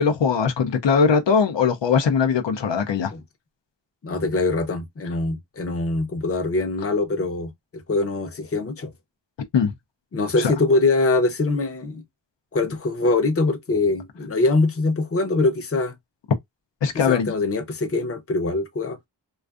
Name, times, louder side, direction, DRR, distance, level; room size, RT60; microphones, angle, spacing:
voice 1, 0.0-3.1 9.5-9.7 10.4-10.5 16.8-17.3, left 6 dB, 75° left, 0.5 m, -20 dB
voice 2, 4.0-8.9 10.1-12.0 12.5-15.9 17.1-19.0, left 3 dB, 30° left, 0.6 m, -23 dB
2.4 x 2.4 x 2.3 m
wide cardioid pair, 45°, 44 cm